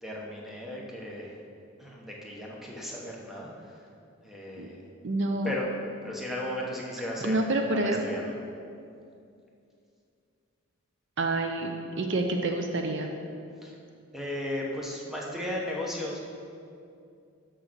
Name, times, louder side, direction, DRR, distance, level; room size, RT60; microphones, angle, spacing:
voice 1, 0.0-1.4 1.8-3.8 4.2-4.8 5.4-5.7 6.0-7.4 7.7-8.2 13.6-13.7 14.1-16.2, left 1 dB, ahead, -3 dB, 0.9 m, -35 dB
voice 2, 5.0-5.5 7.2-8.1 11.2-13.1, right 2 dB, 55° right, 3 dB, 0.6 m, -28 dB
6.4 x 6.3 x 6.2 m, 2.5 s
head